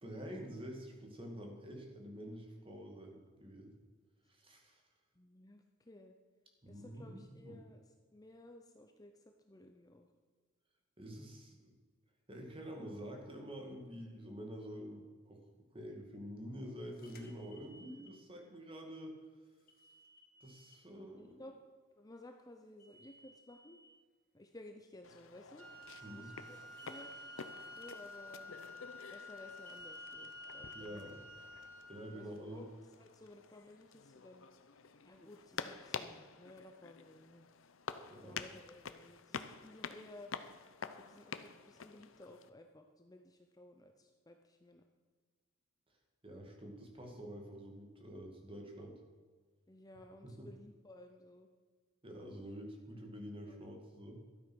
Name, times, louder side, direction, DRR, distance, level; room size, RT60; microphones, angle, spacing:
voice 1, 0.0-3.7 4.3-4.8 6.6-7.6 11.0-11.7 12.3-15.4 15.7-19.2 20.4-21.4 26.0-26.3 30.7-31.2 31.9-32.6 38.1-38.4 46.2-48.9 50.2-50.5 52.0-54.2, equal, 25° right, 2 dB, 2.1 m, -48 dB
voice 2, 5.1-6.1 6.7-10.1 20.7-20.8 21.1-21.6 22.0-23.8 24.3-25.7 26.1-27.1 27.8-28.6 29.1-31.2 32.1-32.7 33.0-37.5 38.2-40.3 40.9-44.8 49.7-51.5 52.4-52.6 53.5-53.6, left 1 dB, 15° left, 4 dB, 0.7 m, -56 dB
sound 1, 17.0-18.1 19.7-20.8 22.8-23.9 26.7-27.9 29.7-30.7, right 1 dB, 45° left, 1.6 m, -56 dB
sound 2, 25.0-42.5, left 6 dB, 65° left, 0.7 m, -49 dB
Wind instrument woodwind instrument, 25.6-32.2, left 2 dB, 65° right, 1.5 m, -52 dB
12.5 x 8.8 x 6.2 m, 1.5 s
head